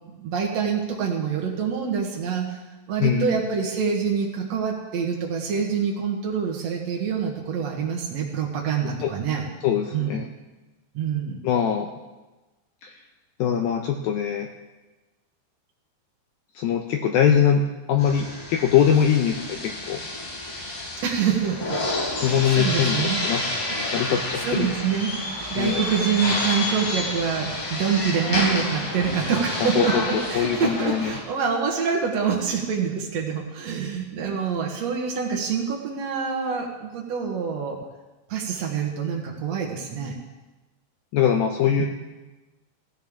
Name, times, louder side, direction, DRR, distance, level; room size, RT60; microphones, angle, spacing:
voice 1, 0.1-2.6 2.9-9.5 9.9-10.2 10.9-11.4 21.0-21.8 22.2-23.2 23.6-23.8 24.1-37.8 38.3-40.2 41.7-41.9, right 6 dB, 65° right, -1 dB, 1.6 m, -26 dB
voice 2, 3.0-3.4 9.0-9.1 9.6-10.3 11.4-11.9 12.8-12.9 13.4-14.5 16.6-20.0 22.2-23.4 23.9-24.7 25.6-25.8 29.6-31.1 41.1-41.9, left 8 dB, 85° left, 4 dB, 2.1 m, -22 dB
sound 1, 18.0-31.2, left 2 dB, 65° left, 5.1 m, -29 dB
17.5 x 16.0 x 3.7 m, 1.1 s
omnidirectional pair, 5.1 m